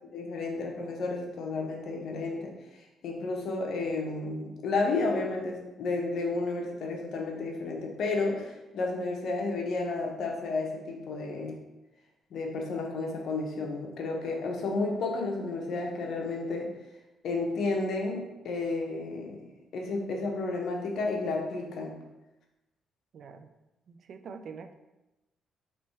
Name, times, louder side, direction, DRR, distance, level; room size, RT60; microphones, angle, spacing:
voice 1, 0.1-2.5 3.0-11.5 12.3-16.7 17.2-19.4 19.7-21.9, left 3 dB, 70° left, 0 dB, 0.8 m, -32 dB
voice 2, 23.1-23.5 23.9-24.7, right 5 dB, 60° right, 9 dB, 0.3 m, -45 dB
3.3 x 3.1 x 4.3 m, 1.0 s
cardioid pair, 90°, 0 cm